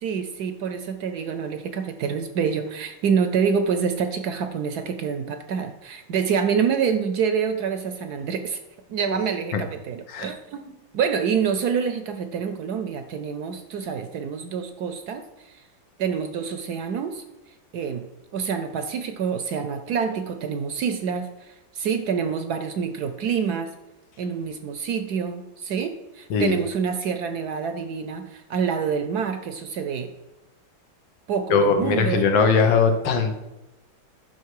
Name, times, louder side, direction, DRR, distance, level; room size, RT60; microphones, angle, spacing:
voice 1, 0.0-8.6 8.9-15.6 16.0-17.2 17.7-18.1 18.3-23.7 24.2-30.1 31.3-32.3, right 6 dB, 65° right, 8 dB, 1.0 m, -27 dB
voice 2, 31.5-33.4, left 5 dB, 80° left, 6 dB, 1.8 m, -20 dB
10.5 x 6.1 x 4.7 m, 0.97 s
omnidirectional pair, 2.1 m